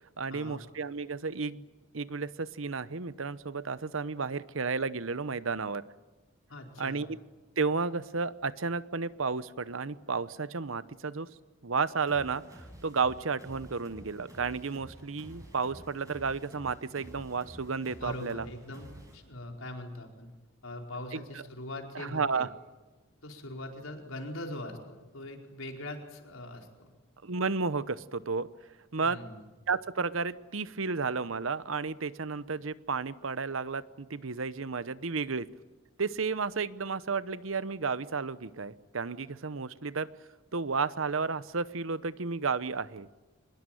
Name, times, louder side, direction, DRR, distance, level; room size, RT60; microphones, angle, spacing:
voice 1, 0.2-1.7 1.9-5.8 6.8-7.1 7.6-11.3 11.6-18.5 21.1-21.2 21.9-22.5 27.2-28.5 28.9-29.2 29.7-35.5 36.0-40.1 40.5-43.1, right 4 dB, 80° right, 16 dB, 0.9 m, -32 dB
voice 2, 6.5-7.1 18.0-18.9 19.1-20.3 20.6-22.5 23.2-24.8 25.1-26.9 29.0-29.4, left 1 dB, 85° left, 2 dB, 4.7 m, -41 dB
sound 1, 12.1-19.2, equal, 15° right, 5.9 m, -50 dB
25.0 x 21.0 x 9.2 m, 1.2 s
head